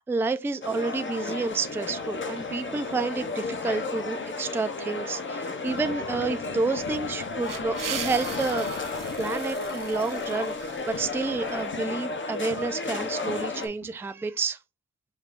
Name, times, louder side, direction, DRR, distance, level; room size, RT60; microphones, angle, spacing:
voice 1, 0.1-8.7 9.2-14.6, right 4 dB, 10° right, 0.3 m, -30 dB
sound 1, 0.6-13.7, left 3 dB, 35° left, 0.6 m, -33 dB
sound 2, 1.5-4.4 5.7-9.4 10.9-13.9, left 5 dB, 75° left, 0.9 m, -44 dB
sound 3, 7.4-11.6, right 8 dB, 75° right, 0.7 m, -40 dB
5.7 x 2.3 x 3.4 m
wide cardioid pair, 125°, 33 cm